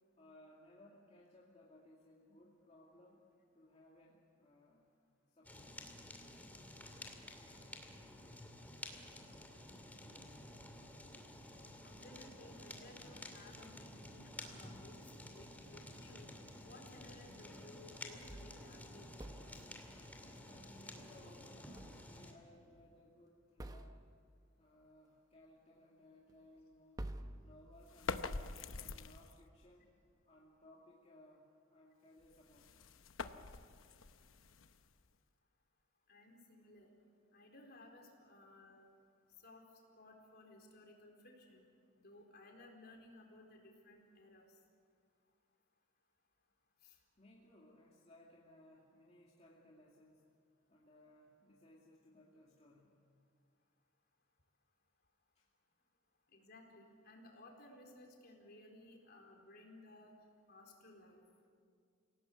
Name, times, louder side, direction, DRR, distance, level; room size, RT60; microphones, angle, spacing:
voice 1, 0.2-3.2 3.5-4.9 5.3-5.9 20.4-24.0 24.6-27.1 27.4-32.7 47.2-50.2 50.7-53.0 55.3-55.5, left 1 dB, 35° left, -4 dB, 2.4 m, -63 dB
Fire, 5.4-22.3, left 1 dB, 10° left, 2.5 m, -52 dB
voice 2, 11.8-15.0 15.3-16.3 16.6-19.4 36.1-36.9 37.3-38.9 39.4-39.6 40.0-41.7 42.0-44.6 46.8-47.0 56.3-60.2 60.5-61.2, left 1 dB, 55° left, 1 dB, 4.3 m, -59 dB
sound 1, 18.2-19.8 21.8-22.4 22.7-22.8 23.6-24.4 26.3-26.4 27.0-28.2, right 1 dB, 20° right, 0.8 m, -50 dB
sound 2, 27.9-29.5 32.2-35.1, left 4 dB, 85° left, 0.9 m, -45 dB
27.5 x 17.5 x 8.2 m, 2.3 s
head